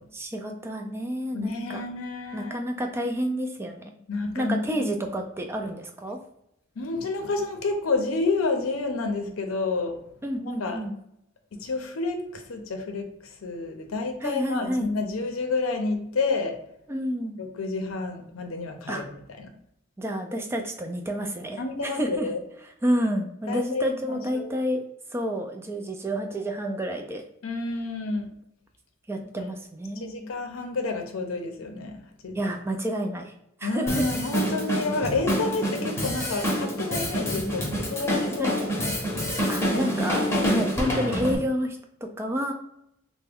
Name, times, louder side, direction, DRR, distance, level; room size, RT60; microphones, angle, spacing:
voice 1, 0.1-1.8 2.3-4.0 4.4-6.2 10.2-10.9 14.2-14.9 16.9-17.4 18.9-19.0 20.0-22.3 22.8-24.8 25.1-27.2 29.1-30.2 32.3-33.3 33.6-34.0 37.2-37.6 38.4-38.5 38.8-38.9 39.5-42.5, equal, 10° right, 4 dB, 0.3 m, -29 dB
voice 2, 1.3-2.7 4.1-5.0 6.8-10.0 10.6-10.8 11.5-16.6 17.4-19.5 21.6-22.4 23.5-24.5 27.4-28.3 29.4-29.5 30.0-32.5 33.6-38.7 39.7-39.9 40.4-40.7, left 3 dB, 80° left, 4 dB, 0.6 m, -29 dB
Drum kit, 33.9-41.4, equal, 15° left, 0.7 m, -27 dB
3.3 x 2.1 x 3.4 m, 0.77 s
head